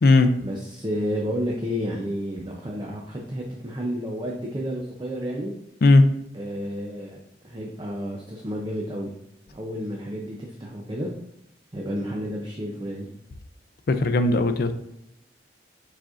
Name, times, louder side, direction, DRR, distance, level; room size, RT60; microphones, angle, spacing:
voice 1, 0.4-5.5 6.3-7.2 7.4-9.1 9.5-11.1 11.7-13.1, equal, 25° right, -1 dB, 0.5 m, -31 dB
voice 2, 13.9-14.7, left 2 dB, 55° left, 8 dB, 0.4 m, -17 dB
4.7 x 4.3 x 2.5 m, 0.82 s
head